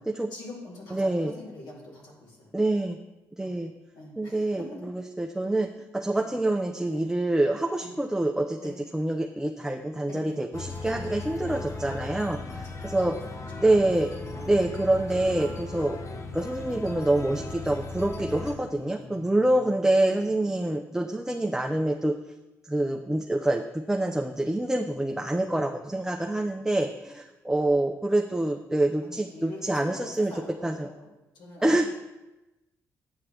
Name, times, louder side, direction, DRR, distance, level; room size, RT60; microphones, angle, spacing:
voice 1, 0.3-2.5 3.4-3.6 3.9-4.8 6.1-6.4 6.9-7.1 7.8-7.9 8.6-8.8 10.1-10.4 10.9-11.3 12.5-13.2 13.7-14.4 18.5-19.5 19.8-21.4 29.0-31.1 31.3-31.9, left 2 dB, 80° left, -5 dB, 2.5 m, -46 dB
voice 2, 0.9-1.3 2.5-3.0 3.4-3.7 4.2-5.7 5.9-13.1 13.6-14.1 14.5-16.0 16.3-22.2 22.7-23.6 23.9-30.3 30.6-30.9 31.6-31.9, right 1 dB, 10° right, 3 dB, 0.5 m, -26 dB
sound 1, 10.5-18.5, left 3 dB, 45° left, 0.9 m, -37 dB
9.0 x 5.7 x 3.3 m, 1.0 s
supercardioid pair, 55°, 7 cm